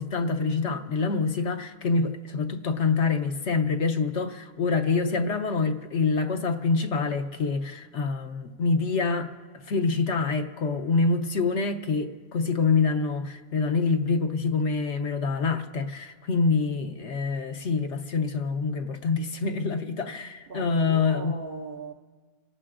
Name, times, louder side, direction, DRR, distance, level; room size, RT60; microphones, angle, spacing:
voice 1, 0.0-9.3 9.7-21.3, left 4 dB, 60° left, 1.0 m, -26 dB
voice 2, 20.5-21.9, right 3 dB, 50° right, 0.7 m, -38 dB
28.5 x 18.0 x 2.5 m
omnidirectional pair, 1.5 m